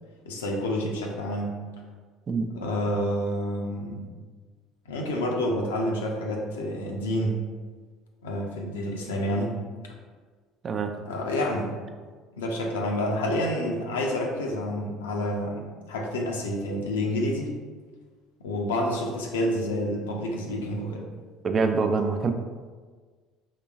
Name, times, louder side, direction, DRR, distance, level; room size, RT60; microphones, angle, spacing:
voice 1, 0.3-1.6 2.6-4.1 4.9-7.4 8.2-9.5 11.1-11.7 12.4-17.5 18.4-21.1, left 1 dB, 85° left, 0 dB, 0.5 m, -28 dB
voice 2, 10.6-10.9 21.4-22.3, right 4 dB, 40° right, 6 dB, 0.4 m, -25 dB
3.8 x 3.0 x 2.3 m, 1.5 s
hypercardioid pair, 70°, 0 cm